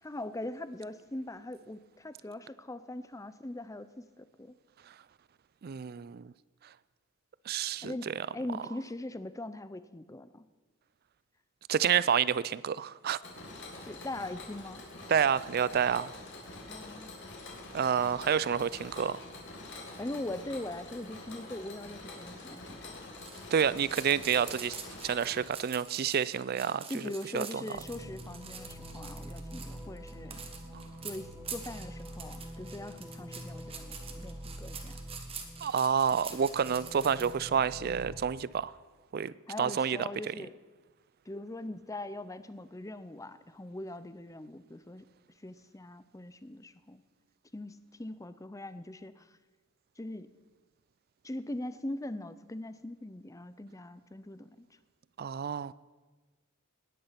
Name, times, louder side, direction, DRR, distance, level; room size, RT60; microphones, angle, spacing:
voice 1, 0.0-4.6 7.8-10.4 13.8-14.8 16.7-17.2 20.0-23.0 26.9-30.4 31.0-35.0 36.3-36.4 39.5-40.6 41.3-45.0 45.4-47.0 47.5-49.3 50.0-50.3 51.2-54.5, left 1 dB, 15° left, 13 dB, 0.6 m, -41 dB
voice 2, 5.6-6.3 7.5-8.1 11.7-13.2 15.1-16.1 17.7-19.2 23.5-24.8 25.0-26.8 27.3-27.6 35.6-38.7 39.1-40.3 55.2-55.7, right 7 dB, 45° right, 19 dB, 0.4 m, -29 dB
Mechanisms, 13.2-25.4, left 2 dB, 55° left, 3.1 m, -46 dB
sound 1, 23.2-37.3, right 6 dB, 25° right, 1.5 m, -46 dB
sound 2, 27.7-38.2, equal, 10° right, 2.0 m, -45 dB
18.5 x 9.9 x 5.8 m, 1.3 s
head